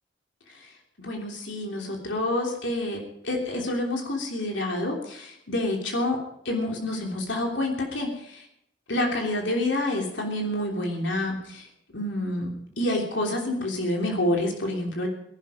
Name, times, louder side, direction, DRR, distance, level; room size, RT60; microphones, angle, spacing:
voice 1, 1.0-6.2 6.4-8.5 8.9-11.7 11.9-15.1, left 1 dB, 70° left, 1 dB, 3.2 m, -28 dB
21.5 x 11.5 x 5.1 m, 0.74 s
head